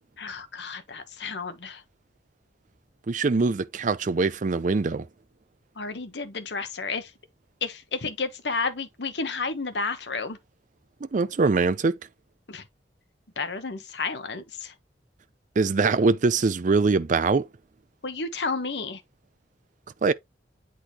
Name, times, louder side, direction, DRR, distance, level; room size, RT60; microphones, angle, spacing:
voice 1, 0.2-1.8 5.8-7.1 7.6-10.4 12.5-12.6 13.4-14.7 18.0-19.0, left 4 dB, 65° left, 1.1 m, -31 dB
voice 2, 3.1-5.1 11.0-12.0 15.6-17.5 20.0-20.1, right 4 dB, 45° right, 0.4 m, -23 dB
8.4 x 3.9 x 2.9 m
head